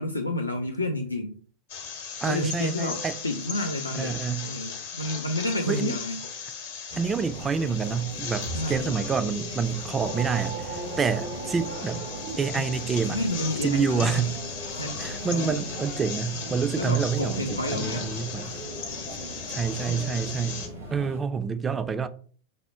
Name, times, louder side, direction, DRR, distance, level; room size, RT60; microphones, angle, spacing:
voice 1, 0.0-1.4 2.3-6.2 6.5-6.7 8.5-8.9 12.5-12.7 13.0-14.3 14.8-15.7 16.8-18.1, left 1 dB, 85° left, 0.4 m, -30 dB
sound 1, 1.7-20.7, left 6 dB, 55° left, 0.7 m, -37 dB
voice 2, 2.2-3.2 3.9-4.5 5.7-6.0 7.0-12.0 12.4-13.2 13.6-14.3 15.0-18.5 19.5-20.6 20.9-22.1, right 6 dB, 20° right, 0.3 m, -27 dB
Chatter, 6.9-21.2, equal, 85° right, 1.3 m, -38 dB
sound 2, 9.7-14.3, right 6 dB, 60° right, 0.7 m, -40 dB
3.4 x 2.1 x 4.2 m
figure-of-eight pair, 90°, 0 cm